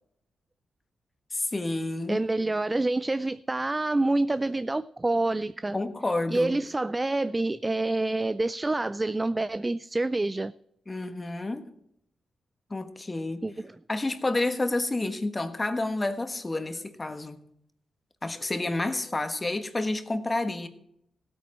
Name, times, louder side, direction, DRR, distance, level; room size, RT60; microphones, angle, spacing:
voice 1, 1.3-2.2 5.7-6.6 10.9-11.7 12.7-13.4 13.9-17.4 18.2-20.7, left 2 dB, 30° left, 1.4 m, -29 dB
voice 2, 2.1-5.8 6.3-10.5 13.4-13.7, right 2 dB, 25° right, 0.3 m, -27 dB
16.0 x 8.8 x 4.4 m
supercardioid pair, 50°, 0 cm